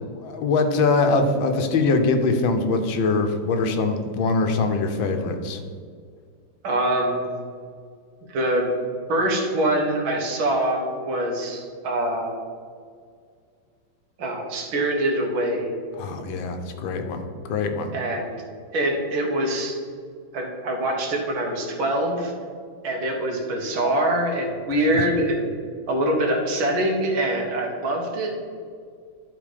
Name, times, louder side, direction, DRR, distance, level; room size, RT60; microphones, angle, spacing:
voice 1, 0.1-5.6 16.0-17.9 24.7-25.1, left 3 dB, 80° left, 6 dB, 1.6 m, -23 dB
voice 2, 6.6-7.2 8.3-8.7 9.1-12.3 14.2-15.7 17.9-18.3 18.7-19.8 20.3-22.3 22.8-25.5 25.9-28.4, right 1 dB, 90° right, 1 dB, 2.1 m, -24 dB
11.0 x 4.1 x 5.0 m, 2.1 s
omnidirectional pair, 2.1 m